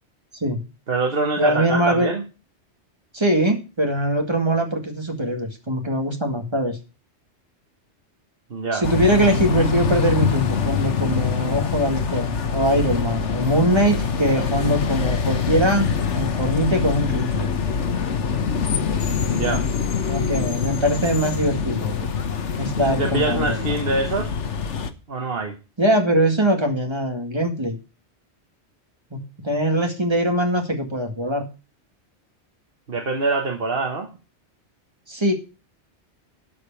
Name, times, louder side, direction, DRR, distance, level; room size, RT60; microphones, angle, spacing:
voice 1, 0.9-2.2 8.5-8.8 19.3-19.7 22.8-24.3 25.1-25.6 32.9-34.1, right 3 dB, 55° right, 4 dB, 1.4 m, -24 dB
voice 2, 1.4-2.1 3.1-6.8 8.7-17.5 20.1-22.2 22.6-23.7 25.8-27.8 29.1-31.4 35.1-35.3, right 1 dB, 25° right, 3 dB, 2.1 m, -22 dB
sound 1, 8.8-24.9, left 6 dB, 85° left, 1.4 m, -24 dB
12.5 x 5.1 x 7.1 m, 0.32 s
omnidirectional pair, 1.2 m